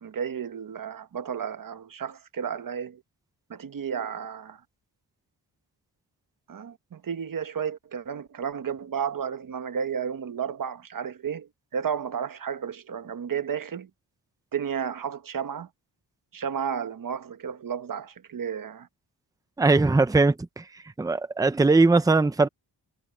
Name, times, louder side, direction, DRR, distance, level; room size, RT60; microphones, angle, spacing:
voice 1, 0.0-3.0 3.5-4.6 6.5-13.9 14.5-15.7 16.3-18.9, right 7 dB, 50° right, 1.0 m, -32 dB
voice 2, 19.6-20.6 21.0-22.5, right 3 dB, 10° right, 0.6 m, -20 dB
wide cardioid pair, 175°, 43 cm